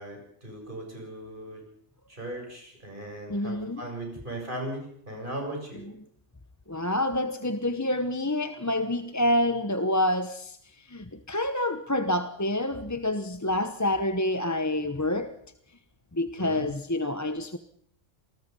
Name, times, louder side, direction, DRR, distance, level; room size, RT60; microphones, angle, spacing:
voice 1, 0.0-1.6 2.1-5.8 16.4-16.6, right 1 dB, 45° right, 1 dB, 7.7 m, -38 dB
voice 2, 3.3-3.8 6.7-10.6 10.9-15.4 16.1-17.6, left 1 dB, 15° left, 10 dB, 0.9 m, -27 dB
27.5 x 20.0 x 5.5 m, 0.67 s
omnidirectional pair, 1.2 m